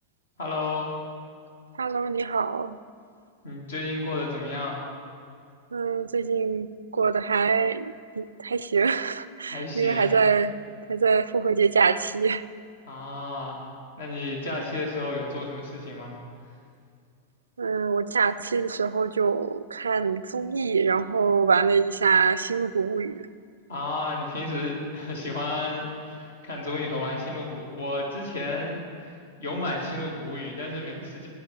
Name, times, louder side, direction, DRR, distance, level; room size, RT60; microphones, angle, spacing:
voice 1, 0.4-0.9 3.4-4.8 9.5-10.1 12.9-13.6 14.0-16.2 23.7-31.3, left 2 dB, 65° left, -2 dB, 2.4 m, -32 dB
voice 2, 1.8-2.8 5.7-6.7 6.9-10.5 10.9-12.4 17.6-23.2, right 5 dB, 75° right, 16 dB, 0.4 m, -24 dB
17.0 x 11.0 x 4.9 m, 2.3 s
figure-of-eight pair, 90°, 0 cm